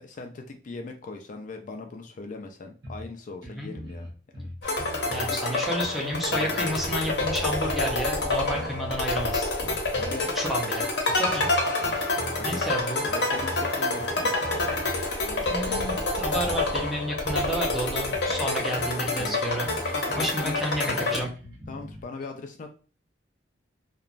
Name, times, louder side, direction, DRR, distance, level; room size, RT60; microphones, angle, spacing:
voice 1, 0.0-4.5 10.0-10.3 12.3-12.8 13.1-14.9 15.2-15.8 20.1-20.6 21.7-22.7, left 3 dB, 45° left, 4 dB, 0.4 m, -40 dB
sound 1, 2.8-3.2 3.4-3.5 3.7-5.4 5.8-7.9 8.2-10.1 10.5-10.7 11.1-12.7 13.0-13.7 14.0-15.0 15.4-17.5 17.8-17.9 18.1-18.5 18.7-22.0, left 1 dB, 70° right, 0.9 m, -41 dB
sound 2, 4.6-21.2, left 2 dB, 75° left, 0.8 m, -28 dB
voice 2, 5.1-9.5 10.4-11.5 11.7-12.1 12.4-13.0 15.5-21.3, equal, ahead, -2 dB, 0.6 m, -31 dB
2.9 x 2.2 x 2.5 m, 0.37 s
head